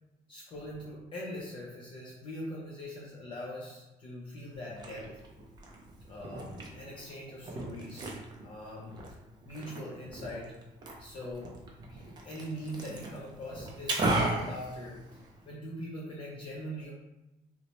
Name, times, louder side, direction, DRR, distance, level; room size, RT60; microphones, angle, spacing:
voice 1, 0.3-5.2 6.1-8.1 8.4-9.0 9.4-10.6 11.0-11.6 11.9-16.9, equal, 35° left, -5 dB, 0.5 m, -42 dB
Liquid, 4.5-15.5, right 2 dB, 30° right, 0.5 m, -37 dB
3.9 x 2.1 x 2.9 m, 0.98 s
cardioid pair, 175°, 15 cm